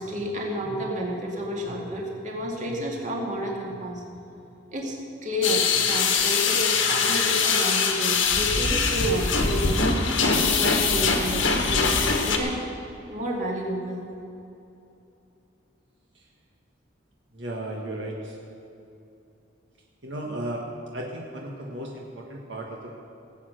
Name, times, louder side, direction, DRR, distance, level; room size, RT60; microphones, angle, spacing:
voice 1, 0.0-4.0 4.7-4.9 5.2-9.8 10.3-12.6 13.1-14.0, equal, 40° right, -2 dB, 2.4 m, -30 dB
sound 1, 5.4-12.4, left 5 dB, 85° left, 1.7 m, -23 dB
voice 2, 17.3-18.4 20.0-20.6 20.9-23.0, right 1 dB, 65° right, -1 dB, 1.6 m, -35 dB
18.5 x 8.5 x 6.4 m, 2.7 s
head